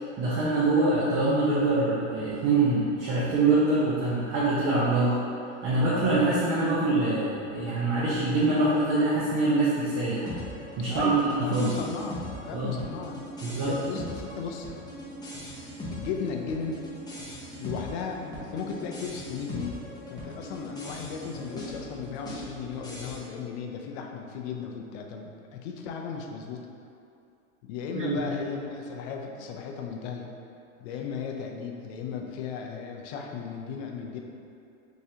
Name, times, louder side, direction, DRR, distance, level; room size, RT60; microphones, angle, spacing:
voice 1, 0.2-5.2 5.6-10.3 10.8-11.7 12.5-12.8 13.4-13.8 28.0-28.2, right 2 dB, 30° right, -8 dB, 0.7 m, -24 dB
sound 1, 10.3-23.2, equal, 10° left, 0.7 m, -40 dB
voice 2, 10.9-13.2 13.6-14.7 15.9-16.8 17.6-19.8 20.1-26.6 27.6-30.3 30.8-34.2, left 6 dB, 55° left, 2 dB, 0.6 m, -36 dB
3.6 x 3.1 x 2.8 m, 2.6 s
supercardioid pair, 120°, 39 cm